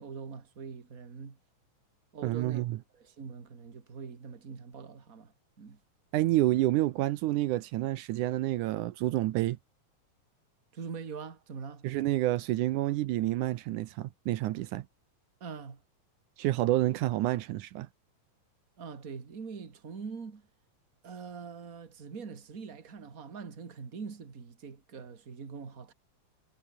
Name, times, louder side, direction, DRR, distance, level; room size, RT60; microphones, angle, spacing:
voice 1, 0.0-1.4 2.1-2.7 2.9-5.8 10.7-11.9 15.4-15.8 18.8-20.5 21.0-25.9, right 5 dB, 30° right, 2.4 m, -43 dB
voice 2, 2.2-2.8 6.1-9.6 11.8-14.9 16.4-17.9, right 15 dB, 80° right, 2.3 m, -29 dB
omnidirectional pair, 3.6 m